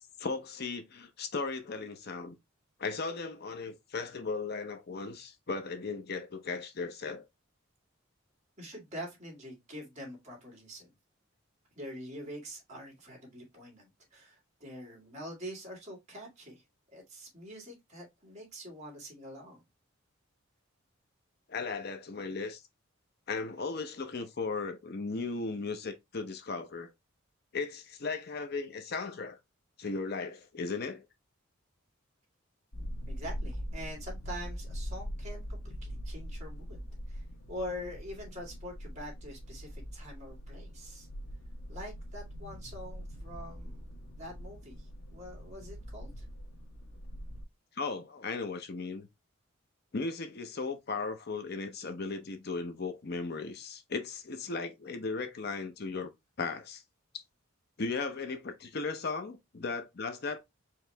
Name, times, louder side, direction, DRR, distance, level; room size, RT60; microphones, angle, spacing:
voice 1, 0.2-2.3 2.8-7.2 21.5-22.6 23.3-26.9 27.5-29.4 29.8-31.1 47.7-49.1 49.9-56.1 56.4-56.8 57.8-60.4, left 4 dB, 50° left, 0.6 m, -36 dB
voice 2, 8.6-10.9 11.7-19.6 33.1-41.1 41.7-43.8 44.1-46.2, equal, 35° right, 2.3 m, -45 dB
sound 1, 32.7-47.4, equal, 90° left, 1.2 m, -42 dB
4.7 x 3.0 x 3.3 m
head